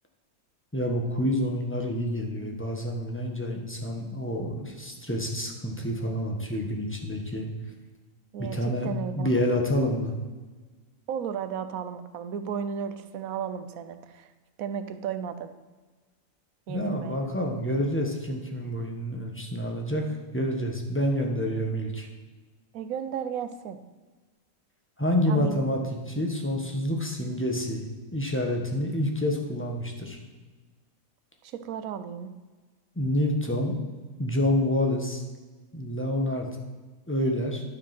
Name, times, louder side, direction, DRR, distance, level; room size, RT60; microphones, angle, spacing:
voice 1, 0.7-7.5 8.4-10.1 16.7-22.1 25.0-25.8 26.1-30.2 32.9-33.7 34.2-35.2 35.7-36.5 37.1-37.6, left 1 dB, 10° left, 1 dB, 1.1 m, -28 dB
voice 2, 8.3-9.3 11.1-14.3 14.6-15.5 16.7-17.3 22.7-23.8 25.3-25.6 31.4-32.3, right 8 dB, 90° right, 10 dB, 1.1 m, -34 dB
11.0 x 4.8 x 5.9 m, 1.3 s
omnidirectional pair, 1.4 m